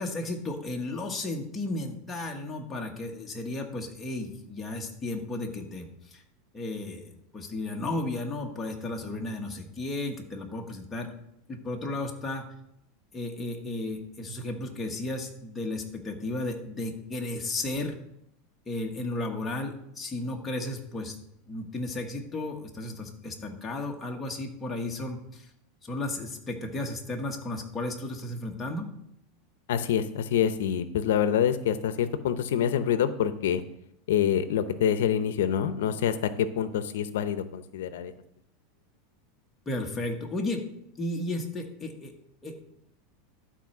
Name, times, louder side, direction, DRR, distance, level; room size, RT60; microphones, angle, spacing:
voice 1, 0.0-6.2 6.5-11.1 11.5-12.4 13.1-18.0 18.7-21.1 21.5-25.5 25.8-28.9 39.7-40.6 41.0-42.1 42.4-42.6, left 2 dB, 15° left, 0 dB, 1.2 m, -34 dB
voice 2, 29.7-33.6 34.1-38.1, left 9 dB, 85° left, 12 dB, 0.7 m, -26 dB
12.0 x 4.3 x 5.9 m, 0.77 s
supercardioid pair, 160°, 0 cm